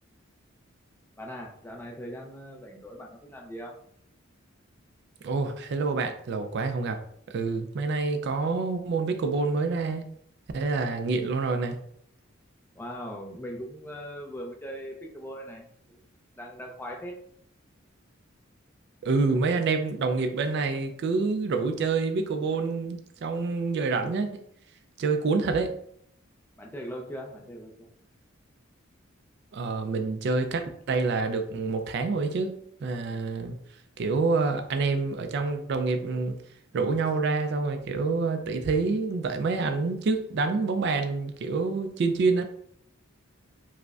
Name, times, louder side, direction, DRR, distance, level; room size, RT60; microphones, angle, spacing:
voice 1, 1.2-3.7 12.7-16.0 16.4-17.2 26.6-27.9, equal, 10° left, 0.4 m, -40 dB
voice 2, 5.2-7.0 7.3-10.0 10.5-11.8 19.0-24.3 25.0-25.8 29.5-33.6 34.0-36.4 36.7-42.4, right 4 dB, 55° right, 0.3 m, -27 dB
4.8 x 2.1 x 2.3 m
head